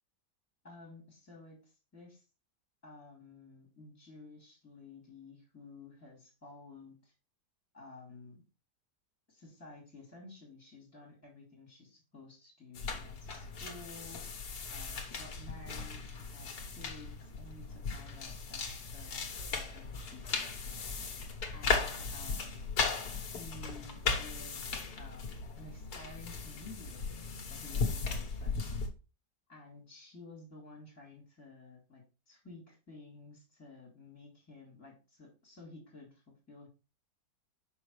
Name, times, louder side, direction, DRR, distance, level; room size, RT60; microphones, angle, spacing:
voice 1, 0.6-2.2 2.8-7.1 7.7-8.4 9.3-20.9 21.5-22.7 23.2-27.1 27.5-28.7 29.5-36.7, left 3 dB, 10° left, -3 dB, 2.6 m, -53 dB
sound 1, 12.7-28.9, left 4 dB, 65° left, 1.7 m, -37 dB
6.3 x 5.7 x 3.2 m, 0.31 s
omnidirectional pair, 1.8 m